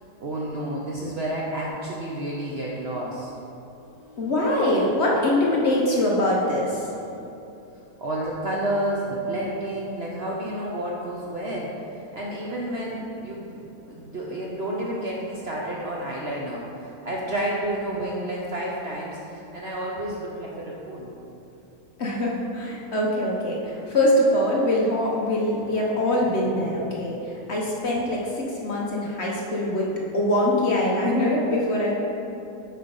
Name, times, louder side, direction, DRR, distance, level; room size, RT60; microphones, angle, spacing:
voice 1, 0.2-3.3 8.0-11.7 12.1-21.1 26.6-26.7, right 1 dB, 50° right, -4 dB, 0.8 m, -30 dB
voice 2, 3.9-6.9 22.0-29.9 30.1-31.9, left 1 dB, 50° left, -3 dB, 1.0 m, -23 dB
7.8 x 4.3 x 5.3 m, 2.9 s
omnidirectional pair, 1.8 m